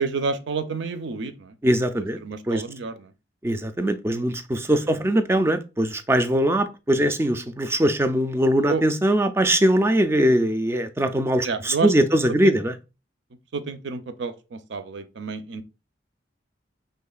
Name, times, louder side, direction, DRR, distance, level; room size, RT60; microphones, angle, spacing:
voice 1, 0.0-1.6 1.9-3.1 4.9-5.4 6.9-7.1 8.7-8.8 11.4-11.9 12.3-12.6 13.5-15.6, right 4 dB, 80° right, 0.5 m, -30 dB
voice 2, 1.6-2.2 2.5-2.6 3.4-12.7, right 1 dB, 15° right, 0.3 m, -21 dB
5.4 x 3.5 x 2.3 m
head